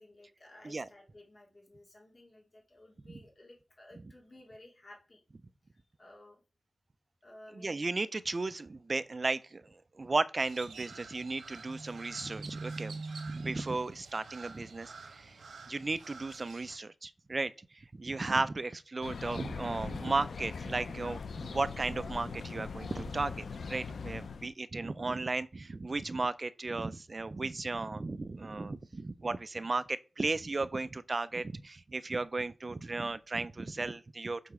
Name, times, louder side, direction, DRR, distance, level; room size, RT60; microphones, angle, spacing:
voice 1, 0.0-5.2 5.7-6.4 7.2-7.9, left 1 dB, 40° left, 2.4 m, -55 dB
voice 2, 7.5-15.4 15.7-34.5, right 3 dB, 35° right, 0.4 m, -35 dB
Crow, 10.4-16.8, right 3 dB, 90° right, 1.0 m, -45 dB
sound 1, 19.0-24.5, left 5 dB, 80° left, 0.6 m, -41 dB
6.7 x 4.0 x 4.8 m
wide cardioid pair, 115°, 0 cm